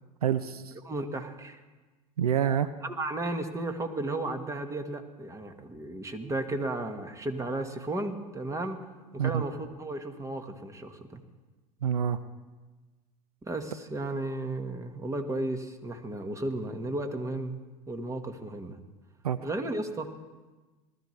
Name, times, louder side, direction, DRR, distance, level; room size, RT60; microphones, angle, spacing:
voice 1, 0.2-0.7 2.2-2.7 9.2-9.4 11.8-12.2 19.2-19.4, right 9 dB, 90° right, 14 dB, 0.5 m, -27 dB
voice 2, 0.8-1.6 2.8-8.9 9.1-11.2 13.4-17.6 17.9-18.8 19.4-20.1, right 2 dB, 15° right, 7 dB, 1.5 m, -34 dB
20.0 x 13.5 x 3.2 m, 1.3 s
hypercardioid pair, 85°, 19 cm